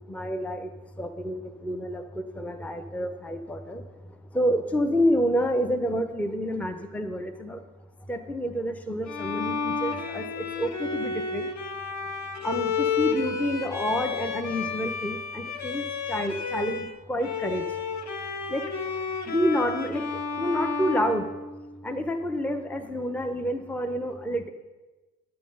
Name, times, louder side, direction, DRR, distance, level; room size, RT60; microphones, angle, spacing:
voice 1, 0.1-0.7 1.0-3.8 4.3-7.6 8.1-11.5 12.4-17.6 18.5-18.7 19.3-20.0 20.4-21.3 21.8-24.5, equal, 5° left, 8 dB, 0.8 m, -28 dB
Bowed string instrument, 9.1-16.9 17.2-22.0, left 5 dB, 35° left, 1.2 m, -31 dB
11.0 x 8.6 x 5.4 m, 1.2 s
figure-of-eight pair, 40°, 46 cm